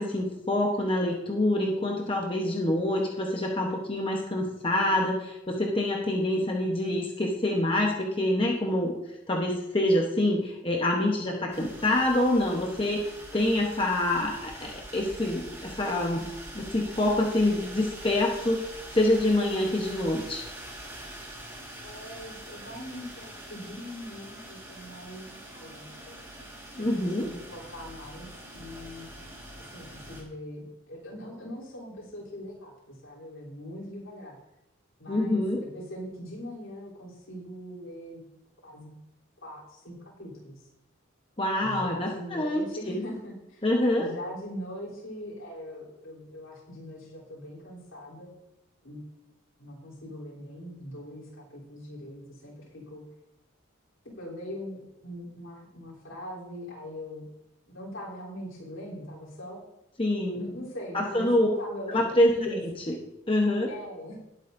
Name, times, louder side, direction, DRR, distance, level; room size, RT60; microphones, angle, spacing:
voice 1, 0.0-8.9 9.3-20.4 26.8-27.3 35.1-35.6 41.4-43.0 43.6-44.1 60.0-60.4 60.9-61.5 61.9-62.3 62.9-63.0 63.3-63.7, left 1 dB, 25° left, 0 dB, 1.0 m, -26 dB
sound 1, 11.5-30.2, right 1 dB, 15° right, 1.8 m, -44 dB
voice 2, 21.8-25.3 25.5-26.2 27.0-29.1 29.6-34.4 35.0-38.2 38.6-38.9 39.4-40.6 41.6-43.6 44.0-48.3 48.8-49.3 49.6-53.0 54.0-57.2 57.7-59.6 60.3-62.6 63.7-64.2, equal, 75° left, -7 dB, 3.5 m, -41 dB
19.5 x 8.0 x 2.7 m, 0.91 s
head